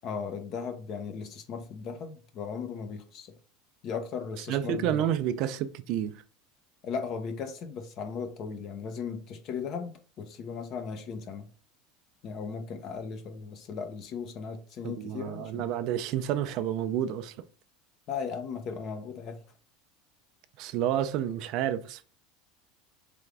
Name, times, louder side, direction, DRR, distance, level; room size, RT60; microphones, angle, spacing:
voice 1, 0.0-3.3 3.8-5.1 6.8-9.9 10.2-11.5 12.2-15.7 18.1-19.4, left 6 dB, 50° left, 0.9 m, -37 dB
voice 2, 4.5-6.2 14.8-17.4 20.6-22.1, right 10 dB, 60° right, 0.5 m, -30 dB
3.7 x 3.4 x 3.3 m
supercardioid pair, 105°, 0 cm